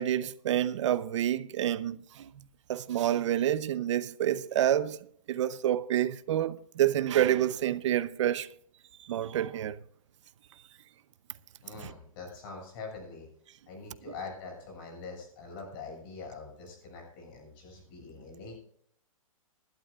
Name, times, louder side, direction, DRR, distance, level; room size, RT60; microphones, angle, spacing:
voice 1, 0.0-2.3 2.7-5.0 5.3-8.5 9.0-9.8, right 11 dB, 55° right, 0.8 m, -28 dB
voice 2, 11.6-13.3 13.7-18.6, left 4 dB, 40° left, 6.9 m, -44 dB
20.5 x 12.0 x 2.5 m
hypercardioid pair, 155°, 18 cm